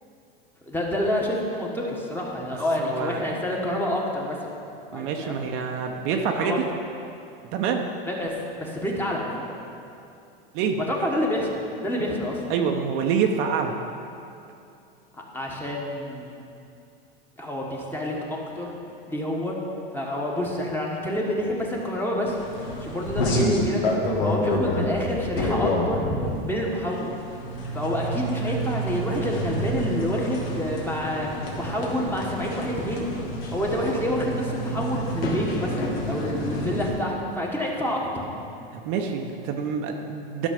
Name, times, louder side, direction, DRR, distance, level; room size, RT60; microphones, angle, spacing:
voice 1, 0.6-4.5 4.9-5.3 5.6-5.8 6.1-6.6 8.0-9.5 10.9-12.4 15.1-16.4 17.4-18.7 19.1-19.6 19.9-22.4 22.8-23.8 24.2-26.0 26.4-27.1 27.7-33.1 33.5-38.0, left 1 dB, 5° left, -2 dB, 1.4 m, -28 dB
voice 2, 2.8-3.3 4.9-6.6 7.5-7.8 10.5-10.8 12.5-13.7 38.7-40.5, right 6 dB, 45° right, 3 dB, 0.8 m, -26 dB
sound 1, 22.3-36.9, equal, 80° left, 2.1 m, -29 dB
12.0 x 6.2 x 5.3 m, 2.6 s
supercardioid pair, 130°, 29 cm